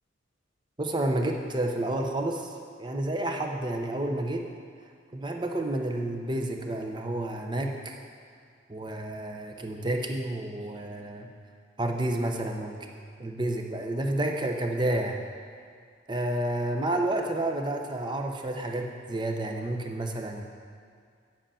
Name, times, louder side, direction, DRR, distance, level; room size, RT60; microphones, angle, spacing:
voice 1, 0.8-4.4 5.1-8.0 8.7-11.3 11.8-12.8 13.2-15.2 16.1-20.4, right 1 dB, 25° right, 3 dB, 0.7 m, -30 dB
8.8 x 7.9 x 5.6 m, 2.2 s
head